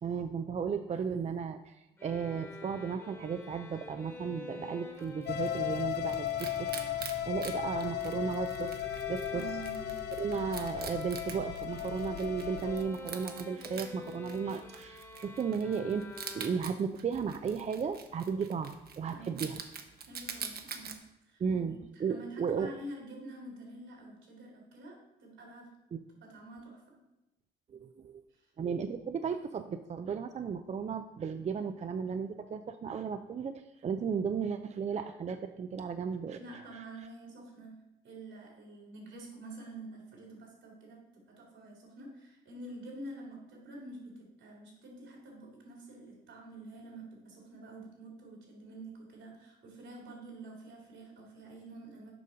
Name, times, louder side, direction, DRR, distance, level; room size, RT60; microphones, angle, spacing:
voice 1, 0.0-1.7 2.0-6.7 7.0-8.8 9.1-9.4 10.2-19.6 21.4-22.8 25.9-26.0 27.7-28.2 28.6-36.4, right 6 dB, 35° right, 9 dB, 0.4 m, -35 dB
sound 1, 2.0-16.9, left 3 dB, 15° left, 1.4 m, -47 dB
Wild animals, 5.0-21.0, right 6 dB, 50° right, 0.8 m, -46 dB
sound 2, 5.3-12.8, left 11 dB, 55° left, 0.6 m, -36 dB
voice 2, 9.3-10.1 19.1-19.5 20.1-25.7 26.2-27.0 28.3-28.4 36.4-52.1, right 1 dB, 75° right, 0 dB, 2.6 m, -48 dB
6.8 x 5.2 x 4.9 m, 0.90 s
cardioid pair, 90°, 20 cm